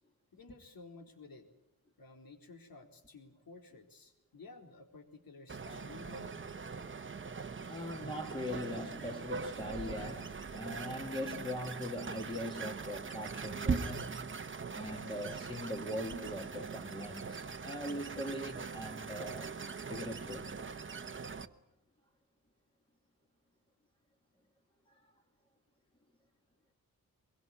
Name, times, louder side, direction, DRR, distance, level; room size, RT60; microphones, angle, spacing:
voice 1, 0.3-1.5 2.0-6.4, left 3 dB, 70° left, 4.1 m, -53 dB
sound 1, 5.5-21.5, right 5 dB, 35° right, 1.0 m, -41 dB
voice 2, 7.7-14.2 14.7-19.6 19.9-20.5, left 1 dB, 15° left, 2.0 m, -41 dB
24.0 x 22.5 x 9.8 m
wide cardioid pair, 175°, 37 cm